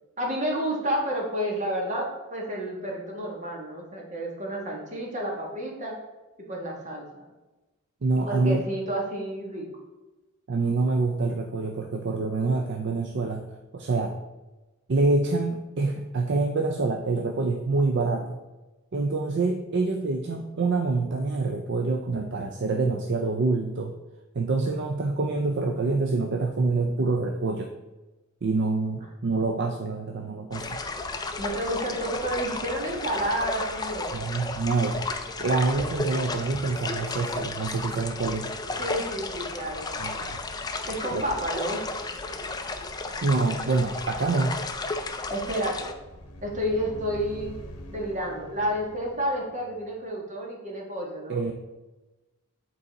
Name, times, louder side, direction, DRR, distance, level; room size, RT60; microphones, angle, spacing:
voice 1, 0.2-5.9 6.5-7.3 8.2-9.7 31.4-34.1 38.8-40.4 40.9-41.8 45.3-45.9 46.4-47.6 47.9-51.4, equal, 35° right, -1 dB, 1.5 m, -30 dB
voice 2, 8.0-8.6 10.5-14.2 14.9-18.4 18.9-23.9 24.3-27.7 28.4-30.8 34.1-35.1 35.4-38.5 40.0-40.4 41.1-41.2 43.2-44.6 51.3-51.5, right 3 dB, 50° right, 5 dB, 0.5 m, -26 dB
sound 1, 30.5-45.9, left 3 dB, 20° left, 0.4 m, -33 dB
sound 2, 45.6-50.2, equal, 90° left, 0.8 m, -45 dB
8.1 x 4.0 x 4.0 m, 1.1 s
head